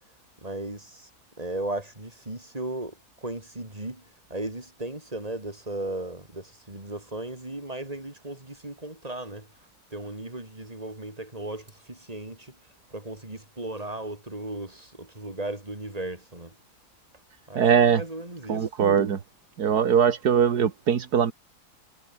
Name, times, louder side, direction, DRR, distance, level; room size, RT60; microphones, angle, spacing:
voice 1, 0.4-1.1 1.4-12.6 12.9-16.6 17.5-18.7, right 2 dB, 25° right, 4.5 m, -36 dB
voice 2, 17.6-18.0 18.5-19.2 19.6-21.3, right 7 dB, 80° right, 2.0 m, -21 dB
omnidirectional pair, 1.7 m